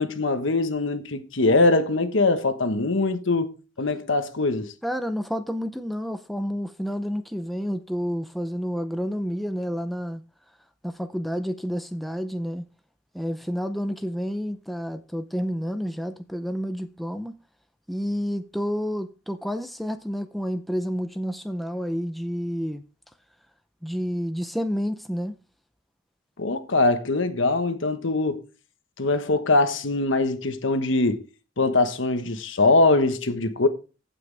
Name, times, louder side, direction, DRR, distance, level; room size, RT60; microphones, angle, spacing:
voice 1, 0.0-3.5 3.8-4.7 26.4-28.4 29.0-31.2 31.6-33.7, left 2 dB, 80° left, 1.3 m, -22 dB
voice 2, 4.8-10.2 10.8-12.6 13.1-17.3 17.9-22.8 23.8-25.3, equal, ahead, 0.5 m, -29 dB
15.5 x 6.1 x 3.4 m
head